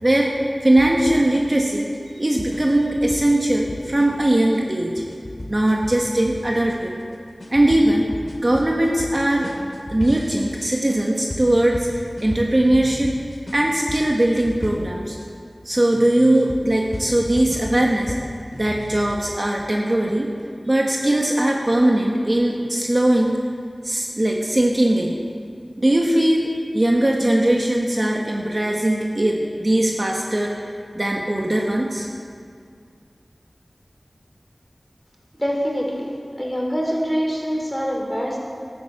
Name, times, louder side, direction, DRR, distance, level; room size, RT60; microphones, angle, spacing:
voice 1, 0.0-0.3 0.6-1.9 2.1-5.0 5.5-6.9 7.5-8.1 8.4-9.5 9.9-13.1 13.5-15.2 15.6-18.2 18.5-20.3 20.6-23.4 23.8-25.1 25.8-30.5 30.9-32.1, right 1 dB, 40° right, -1 dB, 1.5 m, -20 dB
sound 1, 0.8-15.3 15.8-19.2, left 1 dB, 50° left, 2.5 m, -35 dB
voice 2, 35.3-38.4, equal, 5° left, -2 dB, 4.1 m, -25 dB
13.0 x 11.0 x 7.4 m, 2.2 s
wide cardioid pair, 40°, 0 cm